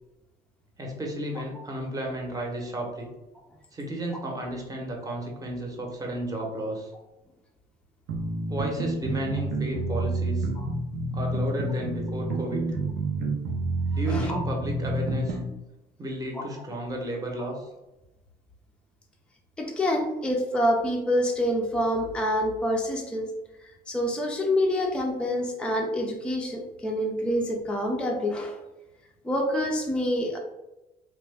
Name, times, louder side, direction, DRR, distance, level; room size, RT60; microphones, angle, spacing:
voice 1, 0.8-3.1 3.7-6.9 8.5-10.5 11.1-12.7 13.9-15.4 16.0-17.7, right 1 dB, 20° right, 0 dB, 0.9 m, -33 dB
sound 1, 8.1-15.5, right 2 dB, 80° right, 0.6 m, -28 dB
voice 2, 14.1-14.4 16.3-16.5 19.6-23.3 23.9-28.6 29.2-30.4, equal, 5° left, 0 dB, 0.5 m, -27 dB
2.9 x 2.2 x 3.3 m, 0.99 s
cardioid pair, 110°, 17 cm